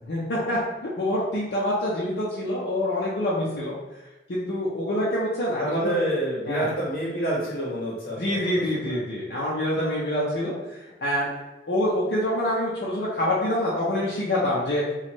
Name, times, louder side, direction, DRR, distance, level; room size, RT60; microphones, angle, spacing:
voice 1, 0.1-3.7 4.3-5.9 6.5-6.7 8.1-11.3 11.7-14.8, left 1 dB, 75° left, -6 dB, 0.7 m, -26 dB
voice 2, 5.6-8.5 8.7-9.0, right 1 dB, 55° left, -6 dB, 1.0 m, -28 dB
3.0 x 2.4 x 4.3 m, 1.1 s
head